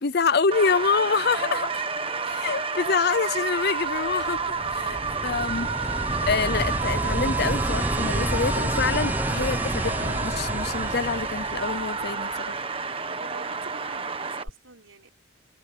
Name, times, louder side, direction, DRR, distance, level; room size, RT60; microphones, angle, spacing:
voice 1, 0.0-1.8 2.3-4.9 5.2-5.7 6.2-12.6, left 5 dB, 50° left, 0.6 m, -26 dB
sound 1, 0.5-14.4, right 4 dB, 25° right, 1.5 m, -30 dB
sound 2, 3.8-12.3 14.5-14.6, right 1 dB, 10° right, 0.9 m, -30 dB
voice 2, 4.6-5.2 13.1-15.1, right 3 dB, 80° right, 5.2 m, -46 dB
head